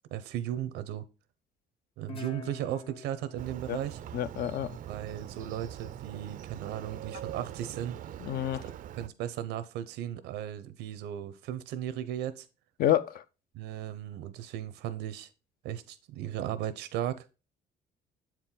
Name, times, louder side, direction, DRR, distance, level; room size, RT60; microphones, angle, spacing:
voice 1, 0.1-1.0 2.0-4.0 4.9-8.0 8.6-12.5 13.5-15.3 15.6-17.3, right 11 dB, 85° right, 0.7 m, -36 dB
Guitar, 2.1-5.3, left 5 dB, 30° left, 0.8 m, -47 dB
Motorcycle, 3.4-9.1, right 11 dB, 55° right, 0.4 m, -43 dB
voice 2, 4.1-4.8 8.2-8.6 12.8-13.2, left 12 dB, 60° left, 0.5 m, -28 dB
7.5 x 4.5 x 3.8 m
cardioid pair, 110°, 17 cm